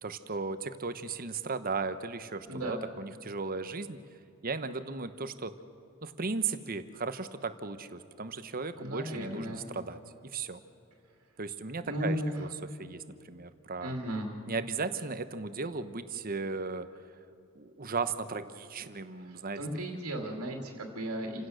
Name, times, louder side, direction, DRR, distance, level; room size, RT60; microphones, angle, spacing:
voice 1, 0.0-4.0 4.4-5.5 6.0-10.6 11.4-12.5 12.8-13.9 14.5-16.9 17.5-19.6 19.9-20.3, right 4 dB, 40° right, 11 dB, 1.0 m, -36 dB
voice 2, 2.5-2.8 8.8-9.7 11.9-12.4 13.8-14.3 19.6-21.5, equal, 90° right, 1 dB, 2.5 m, -35 dB
29.0 x 16.5 x 6.4 m, 2.5 s
head